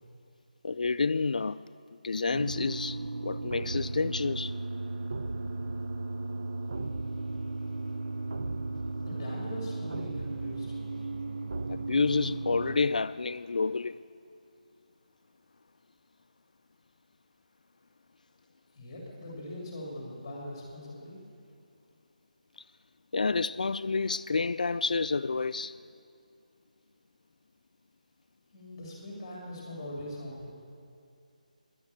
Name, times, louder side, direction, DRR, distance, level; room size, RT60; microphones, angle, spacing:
voice 1, 0.6-1.7 2.0-4.5 11.7-14.0 23.1-25.8, left 4 dB, 65° left, 0.3 m, -29 dB
sound 1, 2.3-12.8, right 2 dB, 50° right, 0.7 m, -35 dB
voice 2, 9.0-10.8 18.7-21.2 28.5-30.5, left 1 dB, 20° left, 2.8 m, -41 dB
15.0 x 11.0 x 8.4 m
figure-of-eight pair, 175°, 5 cm